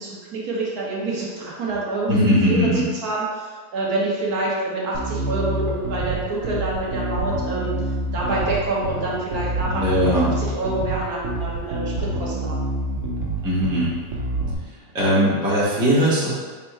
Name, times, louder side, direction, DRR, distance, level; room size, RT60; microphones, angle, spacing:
voice 1, 0.0-7.7 8.1-12.6, right 2 dB, 60° right, -5 dB, 1.2 m, -27 dB
voice 2, 2.1-2.8 9.8-10.3 13.4-13.9 14.9-16.3, equal, 5° right, -8 dB, 0.4 m, -19 dB
Bass guitar, 4.9-14.5, right 2 dB, 90° right, 1.4 m, -27 dB
4.3 x 2.1 x 4.5 m, 1.5 s
omnidirectional pair, 2.0 m